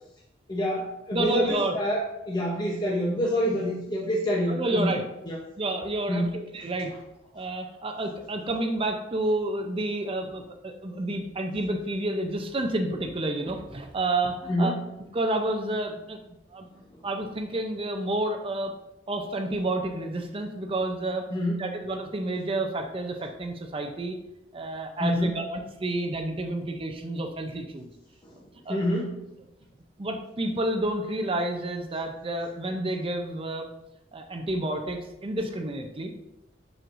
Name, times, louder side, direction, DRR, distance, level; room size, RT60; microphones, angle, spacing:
voice 1, 0.5-4.9 5.3-5.4 6.1-6.3 14.5-14.8 21.3-21.6 25.0-25.3 28.7-29.1, equal, 25° left, -4 dB, 0.8 m, -26 dB
voice 2, 1.1-1.8 4.5-5.0 5.6-6.9 7.3-14.7 15.1-16.2 16.5-18.7 19.1-21.3 21.6-24.2 24.5-27.9 28.7-28.8 30.0-33.7 34.1-36.1, right 2 dB, 30° right, 4 dB, 0.6 m, -30 dB
7.5 x 6.4 x 2.6 m, 0.90 s
head